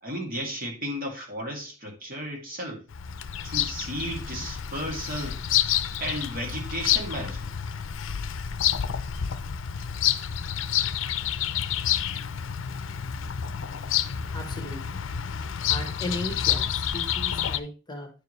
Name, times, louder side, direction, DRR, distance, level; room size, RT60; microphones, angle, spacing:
voice 1, 0.0-2.8 3.4-5.4 6.0-7.5 9.9-10.0 11.3-11.5, equal, 50° right, 2.2 m, -34 dB
Bird vocalization bird call bird song, 2.9-17.6, left 9 dB, 80° left, 0.5 m, -29 dB
voice 2, 14.3-15.0 15.7-18.1, left 1 dB, 20° left, 1.2 m, -36 dB
9.7 x 4.7 x 3.2 m
head